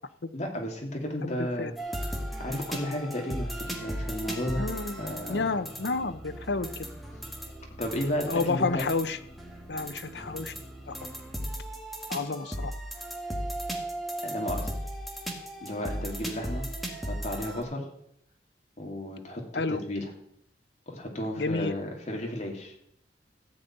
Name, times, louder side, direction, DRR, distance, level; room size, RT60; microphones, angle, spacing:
voice 1, 0.3-1.7 2.4-4.7 5.0-5.4 7.8-8.8 14.2-14.7 15.6-16.7 17.0-17.9 18.8-20.1 20.9-22.7, left 1 dB, 40° left, 0 dB, 2.9 m, -33 dB
voice 2, 1.2-1.7 4.6-5.0 5.3-6.9 8.3-9.2 9.7-10.6 10.9-11.1 12.1-12.7 19.5-19.8 21.4-21.7, left 3 dB, 70° left, 12 dB, 0.7 m, -30 dB
sound 1, 1.8-17.6, equal, ahead, 2.0 m, -37 dB
14.5 x 5.4 x 9.0 m, 0.71 s
head